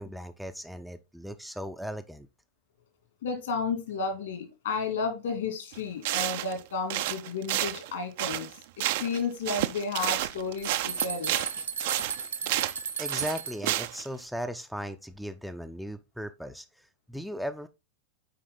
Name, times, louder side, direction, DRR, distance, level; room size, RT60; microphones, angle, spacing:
voice 1, 0.0-2.3 13.0-17.7, equal, ahead, 0.5 m, -37 dB
voice 2, 3.2-8.5 8.8-11.3, left 4 dB, 60° left, 2.6 m, -32 dB
sound 1, 5.7-5.8 6.0-6.6 6.9-9.2 9.5-14.1, right 14 dB, 50° right, 0.5 m, -30 dB
sound 2, 10.2-13.7, right 6 dB, 70° right, 0.9 m, -35 dB
8.6 x 4.9 x 3.8 m
figure-of-eight pair, 90°, 0 cm